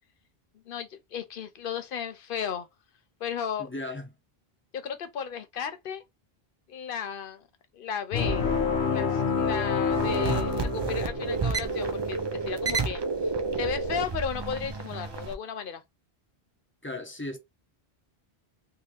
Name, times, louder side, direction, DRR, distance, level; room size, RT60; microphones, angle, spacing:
voice 1, 0.7-2.7 3.2-3.7 4.7-6.0 6.7-7.5 7.7-8.5 8.9-13.0 13.6-15.8, left 7 dB, 60° left, 0.8 m, -34 dB
voice 2, 3.6-4.0 16.8-17.4, left 2 dB, 15° left, 0.7 m, -36 dB
sound 1, 8.1-11.5, left 5 dB, 90° left, 1.1 m, -27 dB
sound 2, 9.9-15.3, right 4 dB, 40° right, 0.4 m, -30 dB
3.5 x 2.7 x 3.2 m
omnidirectional pair, 1.1 m